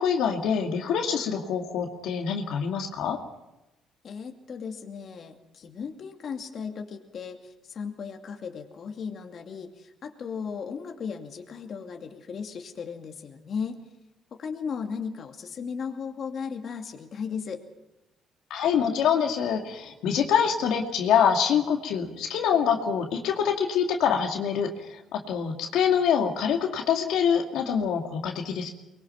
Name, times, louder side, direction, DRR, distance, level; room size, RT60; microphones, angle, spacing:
voice 1, 0.0-3.2 18.5-28.7, left 7 dB, 80° left, 2 dB, 2.4 m, -25 dB
voice 2, 4.0-13.8 14.3-17.6, left 6 dB, 50° left, 3 dB, 2.5 m, -36 dB
24.0 x 22.0 x 5.9 m, 0.96 s
cardioid pair, 110°, 0 cm